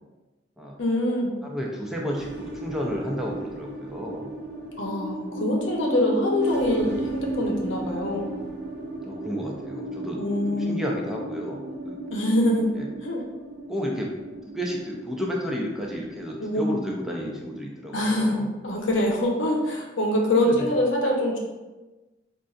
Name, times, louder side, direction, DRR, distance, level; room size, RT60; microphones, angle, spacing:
voice 1, 0.8-1.4 4.8-8.3 10.2-10.7 12.1-12.6 13.0-13.2 16.4-16.7 17.9-21.4, left 1 dB, 75° left, -1 dB, 0.8 m, -24 dB
voice 2, 1.4-4.3 9.0-10.2 10.5-12.0 12.8-12.9 13.7-14.1 14.5-18.5 20.5-20.7, equal, ahead, -3 dB, 0.5 m, -31 dB
sound 1, 2.1-16.8, right 1 dB, 60° right, 0.6 m, -35 dB
5.3 x 2.5 x 2.4 m, 1.1 s
head